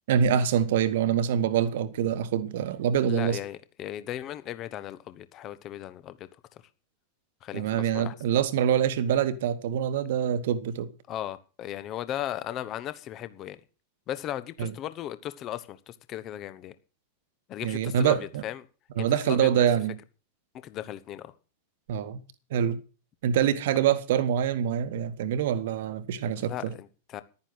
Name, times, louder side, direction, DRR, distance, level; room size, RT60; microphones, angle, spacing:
voice 1, 0.1-3.4 7.5-10.9 14.6-14.7 17.6-18.4 19.0-19.9 21.9-22.2 22.5-22.8 23.2-26.7, right 9 dB, 55° right, 1.3 m, -25 dB
voice 2, 3.1-6.3 7.4-7.6 7.9-8.1 11.1-13.6 14.1-16.7 17.5-18.6 19.0-19.6 20.6-21.3 26.4-27.2, left 12 dB, 35° left, 1.2 m, -36 dB
12.0 x 9.7 x 6.5 m
figure-of-eight pair, 90°, 0 cm